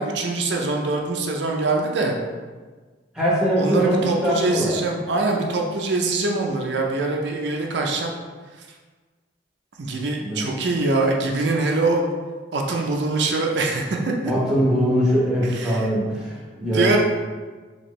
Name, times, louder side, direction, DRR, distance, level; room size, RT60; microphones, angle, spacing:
voice 1, 0.0-2.2 3.6-8.1 9.8-12.0 12.5-14.0 15.5-15.9 16.6-17.0, right 3 dB, 70° right, 0 dB, 0.5 m, -23 dB
voice 2, 3.1-4.7 10.2-10.5 14.3-17.0, equal, 5° right, -6 dB, 0.8 m, -22 dB
4.3 x 2.9 x 3.0 m, 1.4 s
head